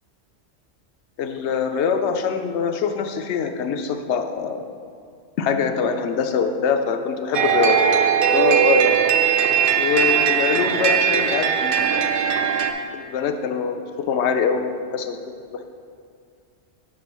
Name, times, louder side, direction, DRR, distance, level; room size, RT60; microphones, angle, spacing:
voice 1, 1.2-4.6 5.4-7.8 8.3-9.0 9.7-12.1 12.9-14.6 14.9-15.2 15.5-15.6, left 6 dB, 80° left, 7 dB, 0.9 m, -23 dB
sound 1, 7.3-12.7, right 8 dB, 60° right, 0.6 m, -19 dB
6.2 x 6.1 x 4.4 m, 2.3 s
omnidirectional pair, 1.2 m